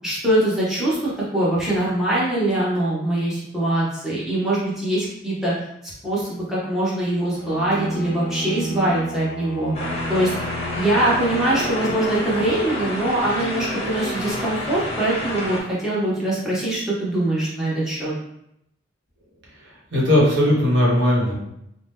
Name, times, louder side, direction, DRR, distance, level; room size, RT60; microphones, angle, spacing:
voice 1, 0.0-5.5 6.0-9.7 10.1-10.3 10.8-18.1, right 1 dB, 5° right, -8 dB, 0.8 m, -23 dB
Bowed string instrument, 7.3-12.2, equal, 75° left, 0.5 m, -32 dB
sound 1, 9.7-15.6, left 1 dB, 35° left, 0.7 m, -29 dB
voice 2, 19.9-21.3, left 1 dB, 65° right, -5 dB, 0.9 m, -17 dB
2.8 x 2.1 x 3.4 m, 0.79 s
head